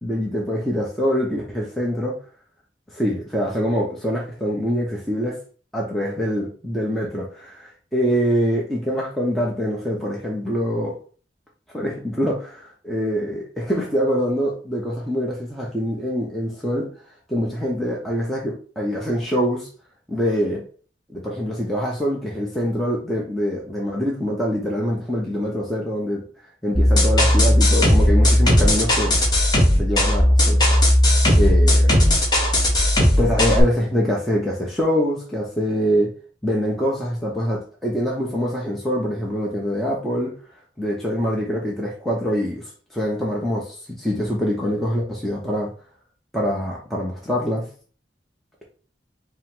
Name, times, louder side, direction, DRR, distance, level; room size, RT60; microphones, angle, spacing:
voice 1, 0.0-2.1 2.9-5.4 5.7-10.9 11.7-16.9 17.3-19.7 20.1-20.6 21.1-26.2 26.6-29.2 29.8-30.6 31.4-32.0 33.2-36.1 36.4-40.3 40.8-45.7 46.3-47.7, equal, ahead, -4 dB, 0.7 m, -24 dB
sound 1, 26.7-33.6, left 1 dB, 25° left, 1.0 m, -16 dB
5.1 x 2.0 x 3.6 m, 0.41 s
head